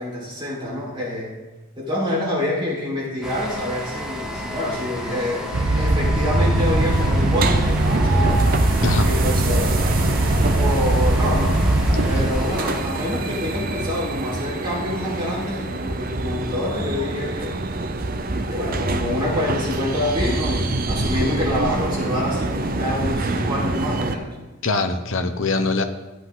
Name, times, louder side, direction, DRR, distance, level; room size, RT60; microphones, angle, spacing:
voice 1, 0.0-1.3 1.8-5.5 5.7-8.4 9.0-9.7 10.5-11.6 12.0-17.6 18.5-24.3, left 1 dB, 25° right, -7 dB, 4.4 m, -26 dB
sound 1, 3.2-12.8, equal, 5° right, 1.2 m, -32 dB
sound 2, 5.5-12.3, right 1 dB, 75° right, 1.0 m, -20 dB
sound 3, 6.6-24.1, right 2 dB, 45° right, 0.7 m, -26 dB
voice 2, 24.6-25.8, left 3 dB, 65° left, 6 dB, 0.9 m, -22 dB
15.0 x 8.1 x 3.9 m, 1.1 s
head